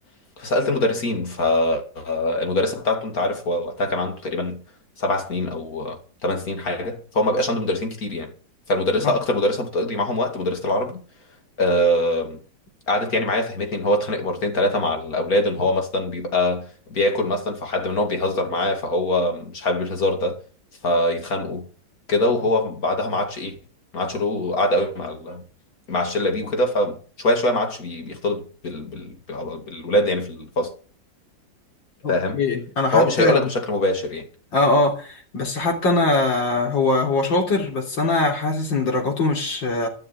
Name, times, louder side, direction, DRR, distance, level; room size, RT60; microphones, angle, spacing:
voice 1, 0.4-4.6 5.0-8.3 8.7-11.0 11.6-12.4 12.9-20.4 20.8-21.7 22.1-23.6 23.9-25.4 25.9-30.7 32.1-32.4 32.9-34.3, left 1 dB, 50° left, 2.8 m, -23 dB
voice 2, 32.0-33.5 34.5-39.9, left 2 dB, 75° left, 4.1 m, -22 dB
13.5 x 6.6 x 9.6 m
omnidirectional pair, 2.0 m